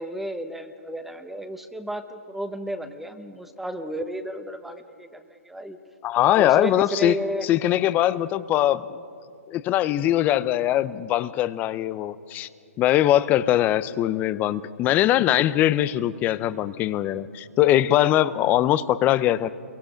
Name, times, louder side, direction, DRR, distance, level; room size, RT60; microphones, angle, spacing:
voice 1, 0.0-5.8 6.4-7.5, equal, 5° right, 9 dB, 1.0 m, -33 dB
voice 2, 6.0-7.2 7.4-9.0 9.5-12.5 12.8-19.5, left 13 dB, 20° left, 16 dB, 0.6 m, -21 dB
28.5 x 23.5 x 5.2 m, 2.3 s
hypercardioid pair, 140°, 8 cm